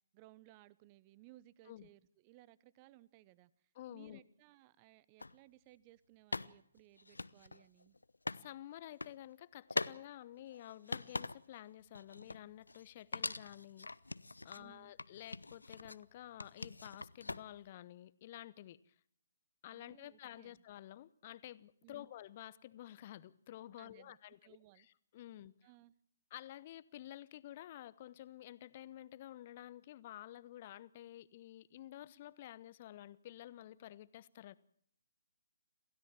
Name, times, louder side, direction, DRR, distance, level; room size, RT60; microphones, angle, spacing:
voice 1, 0.0-3.5 3.9-7.9 14.5-14.9 19.7-20.6 21.8-22.1 23.8-24.9 25.6-25.9, right 17 dB, 25° right, 1.0 m, -62 dB
voice 2, 3.7-4.2 8.3-13.9 14.4-18.9 19.6-24.4 24.7-25.5 26.3-34.6, left 13 dB, 35° left, 1.0 m, -51 dB
sound 1, 5.2-5.3 6.3-8.4 8.8-9.2 9.7-10.0 10.4-11.6 11.9-12.9 13.1-14.6 15.0-16.0 16.4-17.7, left 3 dB, 70° left, 0.8 m, -43 dB
27.5 x 16.5 x 7.5 m
figure-of-eight pair, 135°, 0 cm